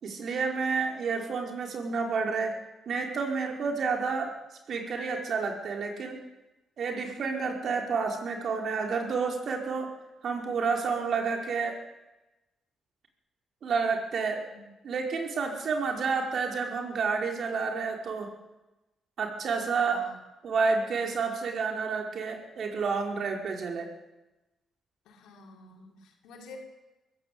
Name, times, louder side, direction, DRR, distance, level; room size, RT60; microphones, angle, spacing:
voice 1, 0.0-2.5 2.8-4.3 4.7-6.2 6.8-9.9 10.2-11.8 13.6-14.5 14.8-18.3 19.2-20.1 20.4-23.9, right 5 dB, 65° right, 2 dB, 5.2 m, -30 dB
voice 2, 19.8-20.1 25.1-26.6, left 4 dB, 90° left, 0 dB, 5.7 m, -50 dB
22.0 x 15.0 x 8.9 m, 1.0 s
cardioid pair, 75°, 0 cm